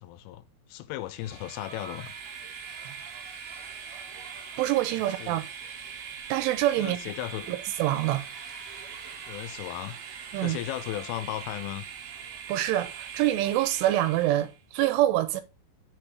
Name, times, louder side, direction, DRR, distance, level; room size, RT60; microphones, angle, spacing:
voice 1, 0.0-2.1 5.2-5.4 6.8-7.5 9.3-10.0 10.4-11.8, left 15 dB, 85° left, 3.1 m, -36 dB
Train, 1.1-14.6, right 7 dB, 70° right, 2.5 m, -41 dB
voice 2, 4.6-5.4 6.3-7.0 7.5-8.3 10.3-10.6 12.5-15.4, right 14 dB, 85° right, 3.1 m, -26 dB
6.8 x 4.9 x 3.8 m
omnidirectional pair, 5.7 m